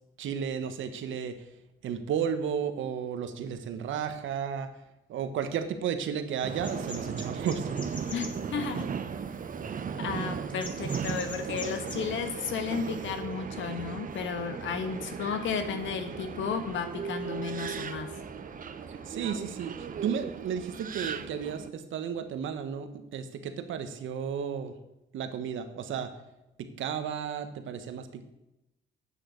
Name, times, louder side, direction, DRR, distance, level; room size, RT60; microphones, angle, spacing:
voice 1, 0.2-1.4 1.8-4.7 5.1-7.7 18.9-24.7 25.1-26.1 26.6-28.2, right 7 dB, 75° right, 9 dB, 1.4 m, -33 dB
Subway metro underground, 6.4-21.7, right 7 dB, 45° right, 0.8 m, -37 dB
sound 1, 6.6-19.9, left 2 dB, 25° left, 2.4 m, -48 dB
voice 2, 8.1-8.9 10.0-18.1, left 6 dB, 70° left, 7 dB, 1.6 m, -33 dB
9.0 x 6.5 x 8.5 m, 0.92 s
cardioid pair, 90°, 20 cm